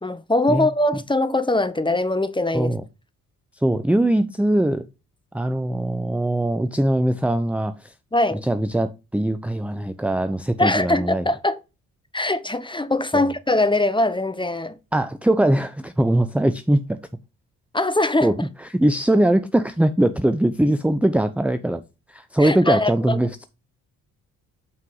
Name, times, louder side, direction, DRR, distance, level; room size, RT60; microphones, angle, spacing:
voice 1, 0.0-2.8 8.1-8.4 10.6-11.6 12.1-14.8 17.7-18.5 22.4-23.2, left 2 dB, 10° left, 1.1 m, -22 dB
voice 2, 3.6-4.8 5.3-7.9 8.5-11.2 13.1-13.2 14.9-16.8 18.2-21.8 22.1-23.5, right 1 dB, 5° right, 0.7 m, -21 dB
8.7 x 4.7 x 3.9 m
hypercardioid pair, 45°, 40 cm